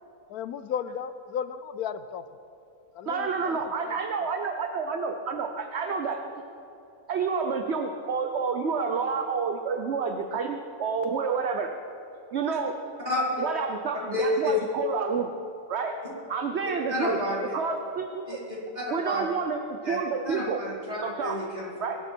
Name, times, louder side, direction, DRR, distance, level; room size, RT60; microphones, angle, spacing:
voice 1, 0.3-2.2 2.9-3.7, left 8 dB, 85° left, 13 dB, 1.1 m, -34 dB
voice 2, 3.1-6.4 7.1-11.7 12.3-12.7 13.4-15.3 15.7-15.9 16.3-17.2 17.5-18.4 18.9-20.6 21.0-21.4 21.8-22.0, right 5 dB, 55° right, 5 dB, 1.0 m, -29 dB
voice 3, 14.1-14.6 16.9-17.5 18.3-19.2 19.8-20.0 20.2-21.7, left 2 dB, 25° right, -7 dB, 4.5 m, -30 dB
22.5 x 12.5 x 4.5 m, 2.7 s
omnidirectional pair, 1.6 m